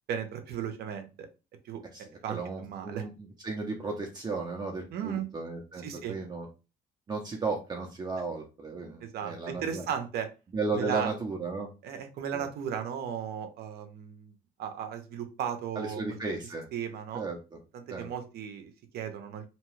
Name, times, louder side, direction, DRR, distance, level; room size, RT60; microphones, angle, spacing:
voice 1, 0.1-1.3 1.6-1.8 2.2-3.0 4.9-5.3 5.8-6.2 9.0-10.3 10.7-11.1 11.8-14.3 14.6-16.0 16.7-17.2 17.7-19.4, right 8 dB, 70° right, 6 dB, 0.7 m, -35 dB
voice 2, 1.9-6.5 7.1-9.8 10.5-11.7 12.3-12.4 15.8-16.7 17.1-17.6 17.9-18.1, right 3 dB, 25° right, 0 dB, 0.6 m, -35 dB
2.9 x 2.2 x 3.1 m, 0.30 s
cardioid pair, 110°, 17 cm